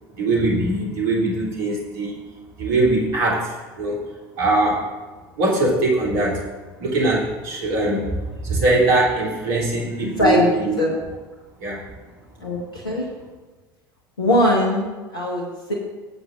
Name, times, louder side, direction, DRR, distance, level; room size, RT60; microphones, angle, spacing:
voice 1, 0.2-2.2 2.6-4.1 4.4-4.9 5.4-6.4 6.8-8.1 8.4-10.8 11.6-11.8, right 2 dB, 60° right, -3 dB, 3.2 m, -21 dB
voice 2, 10.2-10.5 10.8-11.0 12.4-13.1 14.2-15.7, left 1 dB, 75° left, -2 dB, 1.5 m, -20 dB
18.0 x 7.9 x 2.6 m, 1.2 s
figure-of-eight pair, 70°, 12 cm